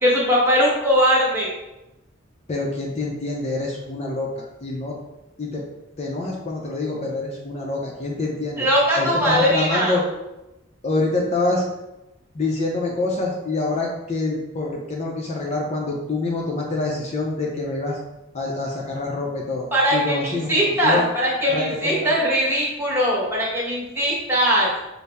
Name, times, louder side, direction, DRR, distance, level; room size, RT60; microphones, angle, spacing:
voice 1, 0.0-1.5 8.6-10.0 19.7-24.7, equal, 10° right, -6 dB, 1.0 m, -20 dB
voice 2, 2.5-5.0 5.4-5.6 6.0-8.7 9.0-10.0 10.8-11.6 12.3-18.0 18.3-21.0 21.5-22.1, left 2 dB, 35° left, -2 dB, 0.5 m, -26 dB
5.3 x 2.0 x 3.4 m, 0.97 s
head